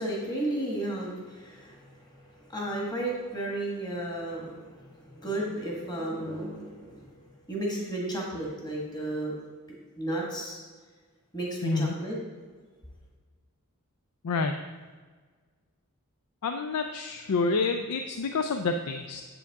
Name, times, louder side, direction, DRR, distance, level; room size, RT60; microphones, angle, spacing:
voice 1, 0.0-7.1 7.5-9.3 10.0-10.6 11.3-12.2, right 1 dB, 20° left, -3 dB, 1.6 m, -33 dB
voice 2, 11.6-11.9 14.2-14.5 16.4-19.2, left 3 dB, 80° left, 6 dB, 0.4 m, -28 dB
8.3 x 7.0 x 3.6 m, 1.5 s
head